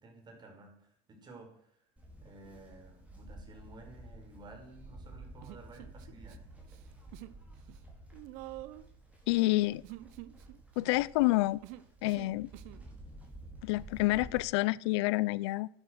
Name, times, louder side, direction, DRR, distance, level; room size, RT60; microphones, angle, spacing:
voice 1, 0.0-1.7 2.2-6.4, right 2 dB, 30° right, 5.1 m, -53 dB
Livestock farm animals working animals, 2.0-14.4, right 1 dB, 10° right, 4.6 m, -52 dB
Human voice, 5.4-6.4 6.6-7.4 7.7-12.9, right 17 dB, 70° right, 0.8 m, -48 dB
voice 2, 9.3-9.8 10.8-11.6 12.0-12.5 13.6-15.7, left 20 dB, 80° left, 0.4 m, -28 dB
11.5 x 10.5 x 6.5 m
supercardioid pair, 110°, 14 cm